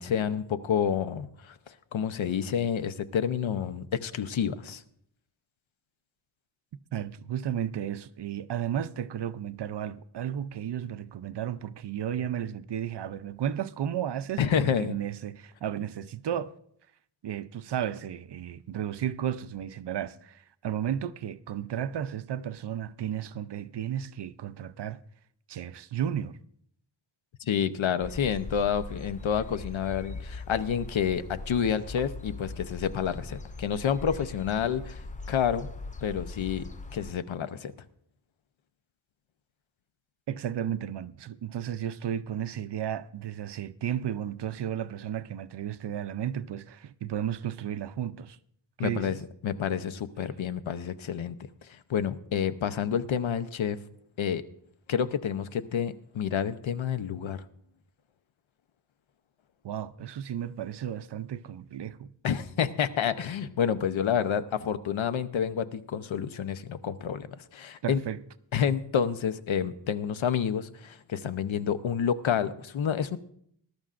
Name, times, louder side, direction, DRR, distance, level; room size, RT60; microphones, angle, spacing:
voice 1, 0.0-4.8 14.4-15.0 27.4-35.0 35.3-35.7 36.0-37.7 48.8-49.2 49.4-51.4 51.6-53.8 54.2-54.4 54.9-57.4 62.2-68.0 68.5-73.2, left 8 dB, 80° left, 0.8 m, -29 dB
voice 2, 6.9-16.5 17.2-25.0 25.5-26.4 40.3-48.4 48.8-49.1 59.6-62.1 67.8-68.2, right 10 dB, 60° right, 0.6 m, -33 dB
sound 1, 28.0-37.1, left 3 dB, 20° left, 0.3 m, -41 dB
20.0 x 12.0 x 2.5 m
wide cardioid pair, 155°, 46 cm